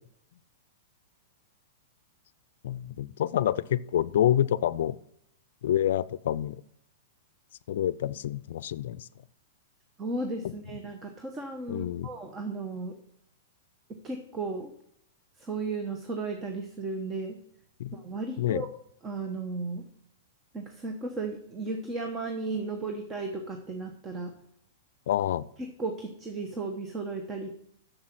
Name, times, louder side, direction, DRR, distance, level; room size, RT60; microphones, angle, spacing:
voice 1, 2.6-5.0 5.6-6.6 7.7-9.1 10.4-10.5 11.7-12.1 17.8-18.0 18.4-18.7 25.1-25.4, left 11 dB, 70° left, 19 dB, 0.4 m, -27 dB
voice 2, 10.0-12.9 13.9-14.7 15.4-17.4 17.9-18.7 19.0-19.9 20.5-24.3 25.6-27.5, right 3 dB, 20° right, 5 dB, 1.0 m, -35 dB
7.3 x 7.1 x 6.0 m, 0.72 s
hypercardioid pair, 130°, 0 cm